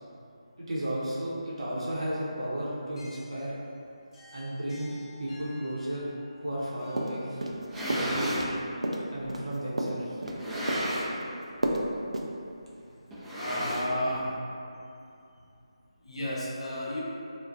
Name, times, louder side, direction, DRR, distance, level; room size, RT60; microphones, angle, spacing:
voice 1, 0.6-3.5 4.3-4.9 5.2-6.1 6.4-7.4 7.8-8.4 9.1-10.2, right 1 dB, 65° right, -8 dB, 0.7 m, -34 dB
sound 1, 2.8-8.5, left 2 dB, 45° left, 0.8 m, -54 dB
sound 2, 7.0-7.6 7.9-8.5 8.8-10.4 10.7-11.3 11.6-11.9 12.1-12.3, right 1 dB, 90° right, 0.3 m, -31 dB
sound 3, 7.5-8.5 9.2-9.3 10.2-11.3 11.6-11.9 12.1-12.2 13.1-14.2, equal, 10° right, 0.4 m, -33 dB
voice 2, 13.4-14.4 16.0-17.0, left 1 dB, 70° left, -5 dB, 0.6 m, -32 dB
2.3 x 2.1 x 2.6 m, 2.6 s
figure-of-eight pair, 155°, 3 cm